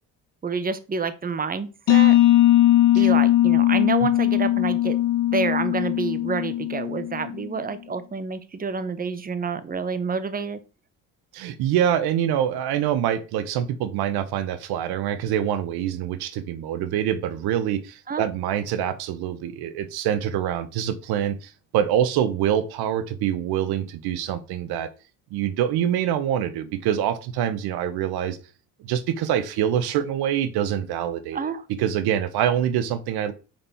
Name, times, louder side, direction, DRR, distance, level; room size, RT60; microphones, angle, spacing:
voice 1, 0.4-2.2 2.9-5.0 5.3-10.6 18.1-18.2 31.3-31.6, right 5 dB, 20° right, 0.8 m, -28 dB
sound 1, 1.9-7.4, left 14 dB, 55° left, 0.8 m, -19 dB
voice 2, 11.3-24.9 25.3-28.4 28.8-31.5 31.8-33.3, right 10 dB, 70° right, 0.7 m, -25 dB
5.3 x 4.3 x 4.2 m
supercardioid pair, 65°, 39 cm